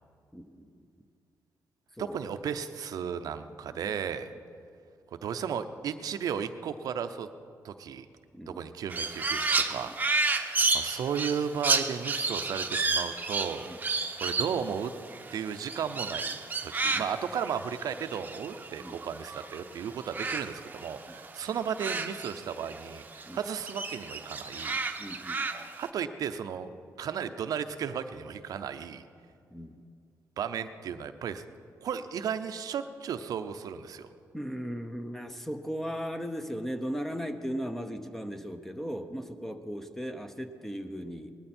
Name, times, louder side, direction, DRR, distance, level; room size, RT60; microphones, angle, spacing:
voice 1, 0.3-0.7 2.0-2.2 3.7-3.9 8.3-8.6 9.7-9.9 13.6-13.8 16.9-17.1 18.8-19.0 21.1-21.2 23.2-23.4 25.0-25.5 29.5-29.7 34.3-41.4, equal, 5° left, 8 dB, 0.9 m, -37 dB
voice 2, 2.0-4.3 5.1-7.3 7.6-8.1 8.5-9.9 10.5-14.9 15.3-16.4 16.6-24.8 25.8-26.7 27.0-29.0 30.4-31.4 31.8-34.1, right 7 dB, 75° right, 9 dB, 0.7 m, -34 dB
Crow, 8.9-19.6 19.9-22.9 23.2-25.9, right 3 dB, 25° right, 0.9 m, -31 dB
19.0 x 13.0 x 4.4 m, 2.3 s
cardioid pair, 95°, 6 cm